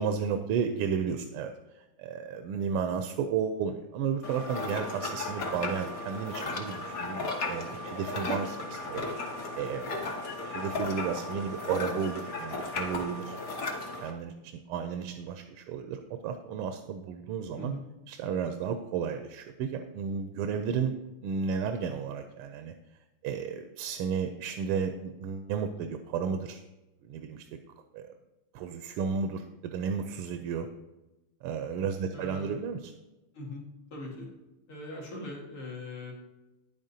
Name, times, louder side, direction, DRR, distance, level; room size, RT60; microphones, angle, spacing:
voice 1, 0.0-9.0 9.6-9.9 10.4-13.4 14.0-17.7 18.1-20.9 21.2-22.7 23.2-26.6 27.0-27.4 27.9-28.1 28.5-30.7 31.4-32.9, right 6 dB, 85° right, 6 dB, 1.5 m, -33 dB
sound 1, 4.2-14.1, left 2 dB, 50° left, 1.2 m, -35 dB
voice 2, 32.1-32.5 33.3-33.6 33.9-34.3 34.7-36.1, left 1 dB, 75° left, -3 dB, 2.8 m, -40 dB
9.7 x 8.8 x 2.7 m, 1.0 s
omnidirectional pair, 2.4 m